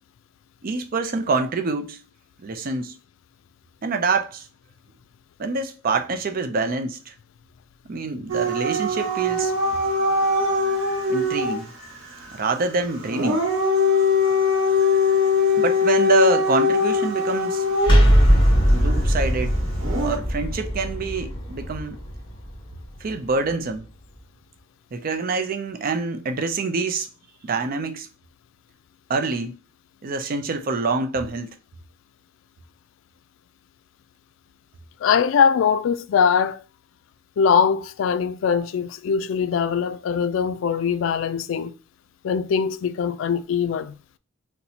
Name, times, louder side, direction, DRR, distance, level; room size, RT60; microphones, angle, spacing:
voice 1, 0.6-2.0 2.4-3.0 3.8-4.5 5.4-7.1 7.9-9.5 11.1-11.7 12.3-13.4 15.6-17.6 18.7-19.6 20.0-22.0 23.0-23.9 24.9-27.1 27.4-28.1 29.1-29.6 30.0-31.6, right 3 dB, 50° right, 0.5 m, -26 dB
Dog / Siren, 8.3-11.6 13.0-18.2 19.8-20.2, left 3 dB, 80° right, 1.0 m, -21 dB
sound 1, 17.8-23.5, equal, 25° left, 1.0 m, -20 dB
voice 2, 35.0-36.6 37.4-41.7 42.2-43.9, left 6 dB, 80° left, 0.3 m, -21 dB
4.1 x 2.2 x 2.8 m
head